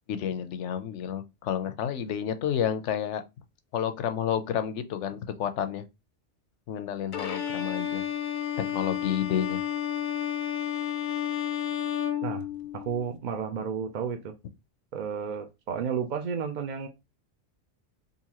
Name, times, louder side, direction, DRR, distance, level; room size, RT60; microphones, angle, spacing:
voice 1, 0.1-3.2 3.7-5.8 6.7-8.1 8.7-9.6, left 9 dB, 80° left, 0.9 m, -30 dB
Bowed string instrument, 7.1-13.0, left 10 dB, 60° left, 0.5 m, -31 dB
voice 2, 12.7-14.3 14.9-16.9, right 6 dB, 55° right, 0.5 m, -32 dB
3.8 x 2.5 x 2.8 m
omnidirectional pair, 1.2 m